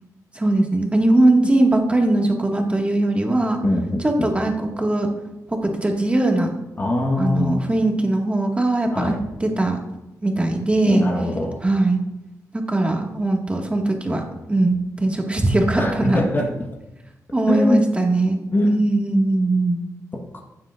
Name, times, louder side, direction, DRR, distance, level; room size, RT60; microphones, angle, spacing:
voice 1, 0.3-3.6 4.0-5.1 5.5-6.5 7.2-9.1 9.4-9.8 10.2-11.0 11.6-12.0 12.7-14.2 14.5-16.2 17.3-18.4 18.6-19.8, right 2 dB, 20° right, 1 dB, 1.9 m, -20 dB
voice 2, 3.6-4.3 6.8-7.6 8.9-9.2 10.9-11.6 15.7-16.5 17.5-17.9 18.5-18.9, left 1 dB, 35° left, 0 dB, 1.4 m, -22 dB
16.0 x 7.3 x 2.6 m, 0.95 s
cardioid pair, 90°, 6 cm